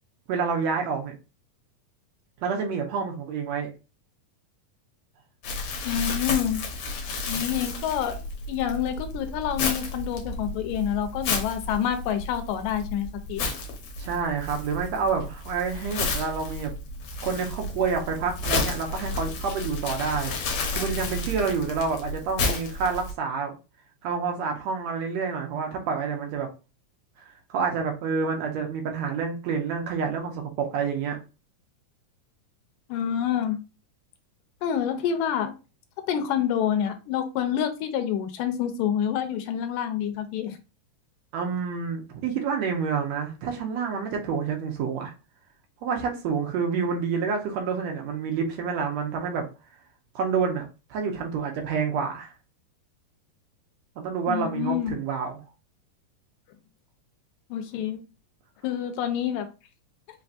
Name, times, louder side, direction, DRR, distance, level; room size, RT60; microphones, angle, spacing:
voice 1, 0.3-1.1 2.4-3.7 14.0-16.7 17.2-20.3 20.7-23.5 24.0-26.5 27.5-31.2 41.3-45.1 45.8-49.5 50.2-52.3 54.0-55.4, right 5 dB, 70° right, 1.9 m, -28 dB
Crumpling crinkling, 5.4-23.1, left 3 dB, 65° left, 2.1 m, -32 dB
voice 2, 5.8-6.6 7.2-8.2 8.5-13.5 32.9-33.6 34.6-35.5 36.1-40.6 54.3-54.9 57.5-58.0 58.6-59.5, left 9 dB, 90° left, 2.3 m, -27 dB
5.5 x 3.4 x 2.5 m
omnidirectional pair, 3.8 m